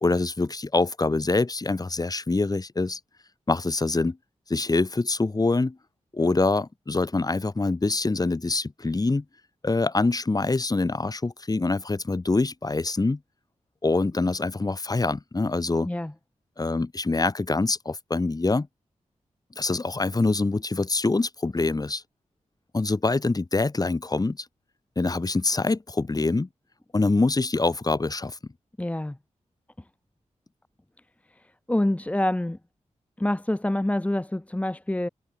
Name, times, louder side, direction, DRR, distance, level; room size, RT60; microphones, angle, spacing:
voice 1, 0.0-3.0 3.5-4.2 4.5-5.8 6.1-9.2 9.6-13.2 13.8-15.9 16.6-18.7 19.6-22.0 22.7-24.5 25.0-26.5 26.9-28.4, left 3 dB, 30° left, 2.1 m, -25 dB
voice 2, 28.8-29.2 31.4-32.6 33.2-35.1, left 1 dB, 10° left, 0.9 m, -26 dB
cardioid pair, 70°, 12 cm